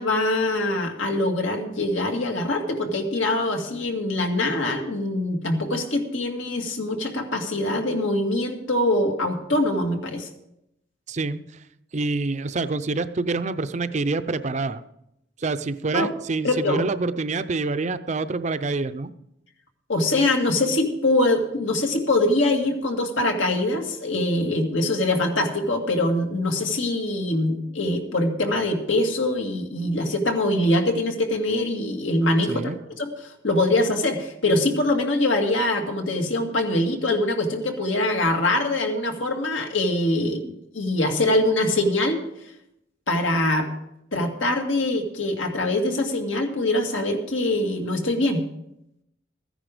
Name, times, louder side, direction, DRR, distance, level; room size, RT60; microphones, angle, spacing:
voice 1, 0.0-10.3 15.9-16.1 16.4-16.8 19.9-42.2 43.1-43.7 44.1-48.4, left 1 dB, 85° left, 3 dB, 2.1 m, -23 dB
voice 2, 11.1-11.4 11.9-14.8 15.4-19.1 32.5-32.8, right 3 dB, 40° right, 12 dB, 0.5 m, -26 dB
14.5 x 10.0 x 5.0 m, 0.81 s
head